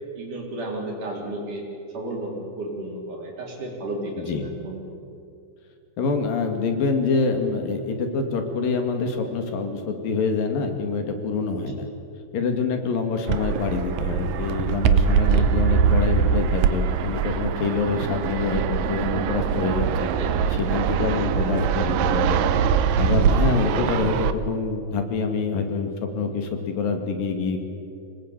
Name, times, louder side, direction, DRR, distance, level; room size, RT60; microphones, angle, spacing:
voice 1, 0.2-1.6 1.9-4.1 4.4-4.8 15.2-15.5 20.2-20.3, right 2 dB, 65° right, -1 dB, 5.7 m, -33 dB
voice 2, 4.2-4.5 6.0-11.9 12.3-20.1 20.5-22.4 22.9-27.6, left 4 dB, 85° left, 5 dB, 4.0 m, -26 dB
Fixed-wing aircraft airplane, 13.3-24.3, right 6 dB, 90° right, 2.6 m, -22 dB
25.5 x 19.5 x 9.0 m, 2.5 s
omnidirectional pair, 3.9 m